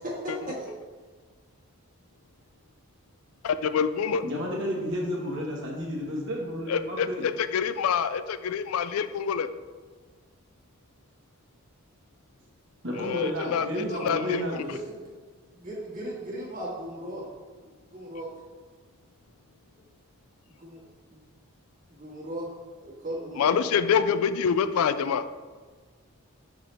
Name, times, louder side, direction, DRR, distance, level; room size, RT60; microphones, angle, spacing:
voice 1, 0.2-0.7 13.9-14.4 14.7-15.0 15.6-17.2 17.9-18.3 20.5-20.8 21.1-21.2 21.9-22.5 22.8-23.6, right 1 dB, 40° right, -5 dB, 1.8 m, -37 dB
voice 2, 3.4-4.2 6.7-9.5 13.0-14.6 23.4-25.2, left 7 dB, 80° left, 12 dB, 0.4 m, -26 dB
voice 3, 4.2-7.2 12.8-14.7, equal, 55° right, -2 dB, 1.4 m, -32 dB
6.0 x 5.7 x 3.4 m, 1.5 s
head